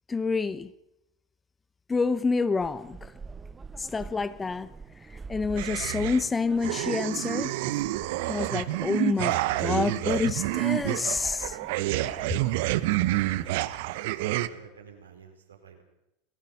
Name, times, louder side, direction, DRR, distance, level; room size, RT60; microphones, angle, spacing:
voice 1, 0.1-0.7 1.9-3.1 3.8-4.7 5.1-7.6 8.3-11.6, left 4 dB, 20° left, 1.0 m, -28 dB
sound 1, 2.6-13.5, right 4 dB, 20° right, 1.0 m, -46 dB
sound 2, 5.6-6.3 6.6-14.5, right 16 dB, 60° right, 1.0 m, -28 dB
voice 2, 14.0-15.8, right 6 dB, 75° right, 4.9 m, -51 dB
29.0 x 19.0 x 5.6 m
figure-of-eight pair, 75°, 0 cm